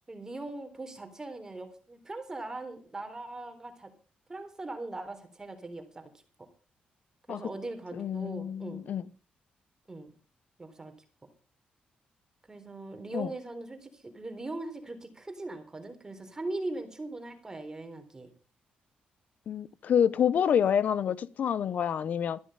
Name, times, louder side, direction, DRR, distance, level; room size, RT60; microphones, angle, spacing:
voice 1, 0.1-3.9 4.3-6.1 7.3-8.8 9.9-10.1 10.6-10.9 12.5-18.3, right 2 dB, 20° right, 3.9 m, -40 dB
voice 2, 7.9-9.1 13.1-13.3 19.5-22.4, left 8 dB, 65° left, 1.0 m, -27 dB
14.0 x 11.0 x 5.7 m
cardioid pair, 95°, 3 cm